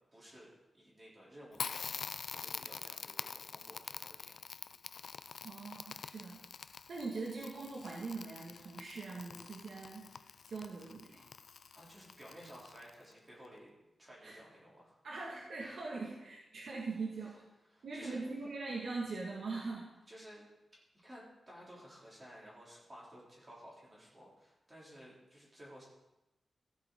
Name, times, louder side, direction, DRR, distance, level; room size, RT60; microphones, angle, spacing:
voice 1, 0.1-4.4 11.7-13.7 14.0-15.0 17.7-18.2 19.5-19.6 20.1-20.5 21.0-25.8, equal, 25° right, -6 dB, 3.4 m, -55 dB
Crackle, 1.5-13.1, left 6 dB, 65° left, 0.3 m, -46 dB
voice 2, 5.4-6.4 6.9-11.2 14.2-14.4 15.0-17.4 17.8-19.9, right 3 dB, 80° right, -3 dB, 2.0 m, -42 dB
15.5 x 8.4 x 3.9 m, 0.95 s
wide cardioid pair, 170°, 0 cm